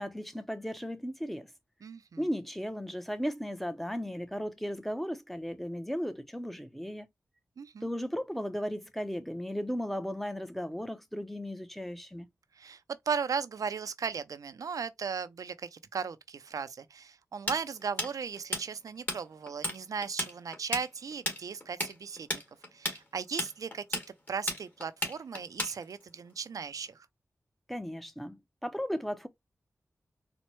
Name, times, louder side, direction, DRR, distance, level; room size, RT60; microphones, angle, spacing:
voice 1, 0.0-1.5 2.2-7.1 7.8-12.3 27.7-29.3, equal, 5° left, 0.6 m, -36 dB
voice 2, 1.8-2.2 7.6-7.9 12.6-12.8 13.1-22.4 22.7-24.0 24.3-27.1, right 6 dB, 80° right, 0.4 m, -37 dB
Tools, 17.5-19.2 19.5-19.8 20.0-26.1, left 1 dB, 30° left, 1.6 m, -33 dB
4.3 x 2.1 x 3.0 m
cardioid pair, 60°, 6 cm